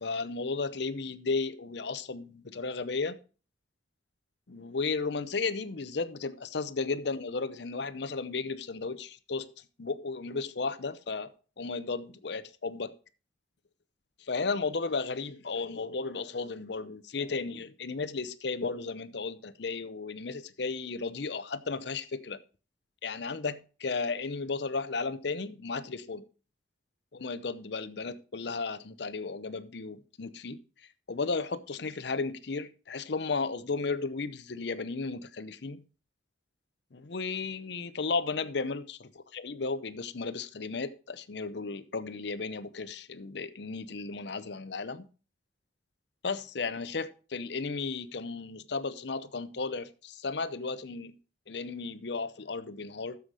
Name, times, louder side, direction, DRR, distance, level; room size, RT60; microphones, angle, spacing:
voice 1, 0.0-3.2 4.5-9.5 9.8-11.3 11.6-12.9 14.2-22.4 23.0-26.2 27.1-30.6 31.1-35.8 36.9-45.1 46.2-51.1 51.5-53.2, left 4 dB, 60° left, 0.7 m, -34 dB
10.0 x 7.1 x 4.7 m
head